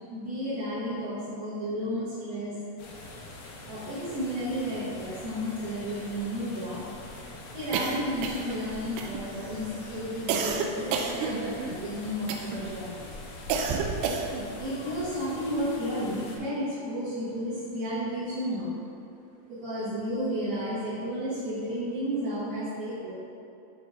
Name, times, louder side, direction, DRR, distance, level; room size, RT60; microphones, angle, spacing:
voice 1, 0.1-2.6 3.7-6.8 7.5-13.0 14.3-18.8 19.5-23.1, equal, 65° right, -12 dB, 3.0 m, -32 dB
sound 1, 2.8-16.4, left 2 dB, 90° left, 2.0 m, -44 dB
sound 2, 7.7-8.6 9.0-9.5 10.3-11.8 12.3-12.7 13.5-14.5, right 5 dB, 80° right, 2.5 m, -30 dB
9.2 x 3.4 x 3.9 m, 2.6 s
omnidirectional pair, 5.1 m